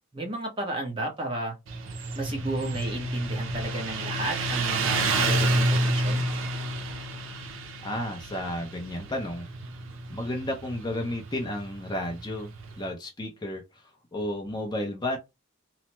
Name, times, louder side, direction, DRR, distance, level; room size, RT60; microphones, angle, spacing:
voice 1, 0.1-1.6 2.1-6.2, right 2 dB, 25° right, 0.9 m, -32 dB
Motorcycle, 1.7-12.8, right 2 dB, 65° right, 0.6 m, -29 dB
voice 2, 7.8-9.5 10.1-12.5 12.8-13.6 14.1-15.2, left 1 dB, 20° left, 0.5 m, -32 dB
3.1 x 2.1 x 2.9 m
head